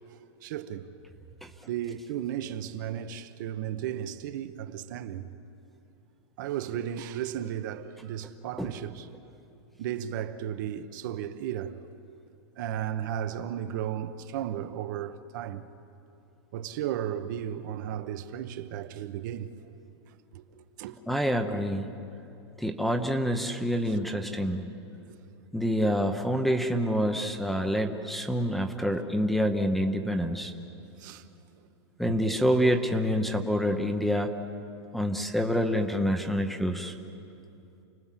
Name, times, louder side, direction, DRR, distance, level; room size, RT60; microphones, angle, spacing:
voice 1, 0.4-0.9 1.7-5.3 6.4-9.1 9.8-11.8 12.6-15.7 16.5-19.5 20.3-21.0 31.0-31.2 32.1-32.2, right 10 dB, 45° right, 1.0 m, -34 dB
voice 2, 21.1-21.9 22.6-24.6 25.5-30.5 32.0-34.3 34.9-36.9, equal, ahead, 0.8 m, -27 dB
29.5 x 19.0 x 7.5 m
supercardioid pair, 165°, 15 cm